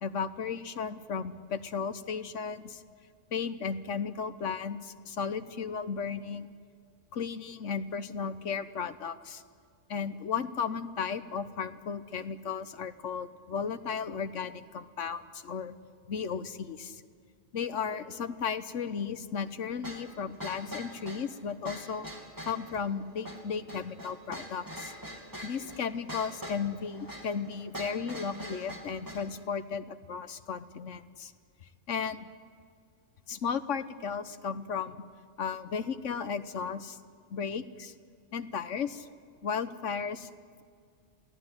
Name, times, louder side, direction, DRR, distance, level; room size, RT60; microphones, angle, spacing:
voice 1, 0.0-2.8 3.3-6.5 7.1-9.4 9.9-15.7 16.1-17.0 17.5-22.1 22.4-24.9 25.4-31.3 31.9-32.3 33.3-35.0 35.4-37.0 37.3-37.9 38.3-39.1 39.4-40.3, left 6 dB, 90° left, 11 dB, 1.4 m, -35 dB
sound 1, 19.8-29.3, equal, 15° right, 3.0 m, -43 dB
27.5 x 17.5 x 9.8 m, 2.1 s
omnidirectional pair, 1.2 m